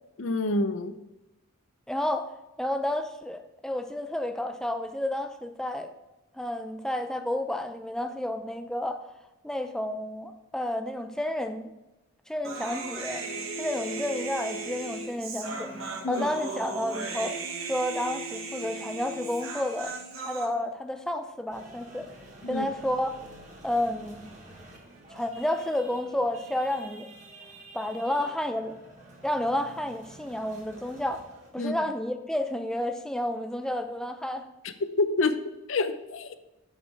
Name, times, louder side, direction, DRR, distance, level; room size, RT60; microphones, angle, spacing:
voice 1, 0.2-0.9 16.0-16.3 22.4-22.7 31.6-31.7 35.0-35.4 35.7-36.4, left 2 dB, 70° left, 10 dB, 0.7 m, -27 dB
voice 2, 1.9-2.3 2.6-5.9 6.3-9.0 9.4-11.7 12.3-13.3 13.6-22.1 22.5-23.1 23.6-24.2 25.1-27.1 27.7-28.8 29.2-31.2 31.5-34.5, left 1 dB, 5° left, 7 dB, 0.5 m, -31 dB
Human voice, 12.4-20.5, right 3 dB, 90° right, 1.6 m, -36 dB
sound 1, 21.5-31.5, right 1 dB, 35° right, 1.6 m, -49 dB
8.2 x 5.4 x 4.7 m, 1.0 s
head